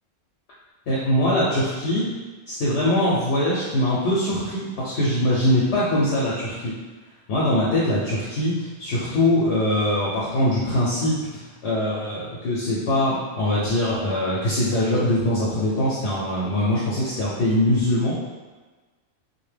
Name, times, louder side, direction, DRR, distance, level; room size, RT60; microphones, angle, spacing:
voice 1, 0.9-2.1 2.5-6.7 7.3-18.1, left 1 dB, 65° left, -7 dB, 0.8 m, -22 dB
2.6 x 2.1 x 3.2 m, 1.3 s
omnidirectional pair, 1.4 m